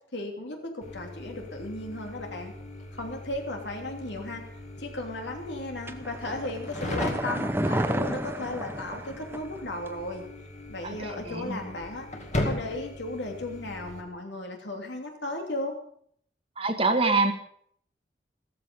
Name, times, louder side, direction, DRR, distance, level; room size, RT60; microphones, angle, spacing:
voice 1, 0.1-2.5 2.9-4.4 4.8-10.2 10.7-12.1 12.4-15.7, left 2 dB, 75° left, 2 dB, 3.1 m, -35 dB
sound 1, 0.8-14.0, left 1 dB, 40° left, 2.3 m, -38 dB
sound 2, 5.9-9.6 9.9-10.0, right 1 dB, 10° right, 0.7 m, -31 dB
voice 2, 10.8-11.6 16.6-17.3, right 3 dB, 30° right, 6 dB, 1.5 m, -25 dB
14.5 x 14.5 x 5.4 m, 0.65 s
head